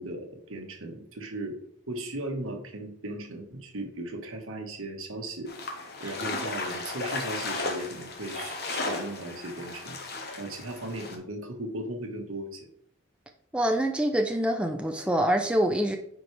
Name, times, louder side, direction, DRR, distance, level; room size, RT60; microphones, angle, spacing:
voice 1, 0.0-1.6 1.9-5.5 6.0-10.0 10.4-12.7, right 1 dB, 80° right, 3 dB, 1.5 m, -37 dB
sound 1, 5.5-11.2, left 3 dB, 50° left, 1.2 m, -35 dB
voice 2, 13.5-16.0, right 1 dB, 5° right, 4 dB, 0.5 m, -25 dB
9.2 x 4.7 x 3.3 m, 0.65 s
head